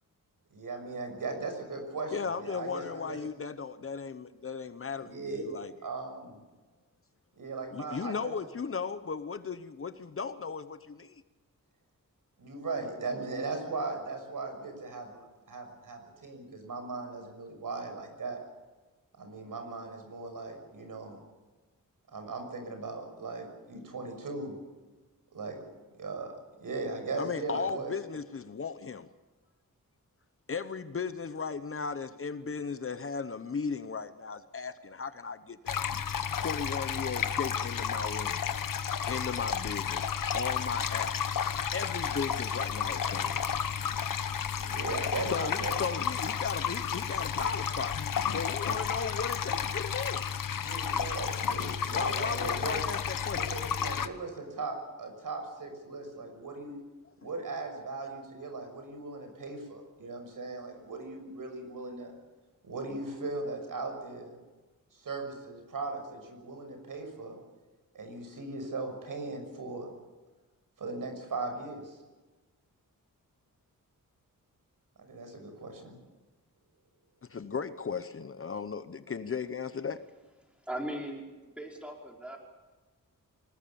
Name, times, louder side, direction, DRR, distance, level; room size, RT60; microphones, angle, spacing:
voice 1, 0.5-3.2 5.0-5.6 5.8-6.4 7.4-8.3 12.4-18.4 19.2-21.2 22.1-24.6 25.3-25.6 25.9-26.3 26.6-27.9 44.6-45.8 50.6-52.8 53.3-56.8 57.2-62.1 62.6-64.3 64.9-67.4 67.9-69.9 70.8-72.0 75.0-76.0, right 3 dB, 75° right, 5 dB, 6.3 m, -38 dB
voice 2, 2.1-5.7 7.7-11.2 27.2-29.1 30.5-35.8 36.4-38.4 39.1-41.2 41.7-43.5 45.3-48.0 48.3-50.2 51.9-53.6 77.3-80.0, left 5 dB, 40° left, 12 dB, 0.9 m, -36 dB
sound 1, 35.7-54.1, left 7 dB, 75° left, 1.2 m, -32 dB
voice 3, 80.6-81.2 81.5-82.4, right 1 dB, 5° right, 0 dB, 4.9 m, -38 dB
25.0 x 20.0 x 7.0 m, 1.2 s
wide cardioid pair, 135°, 33 cm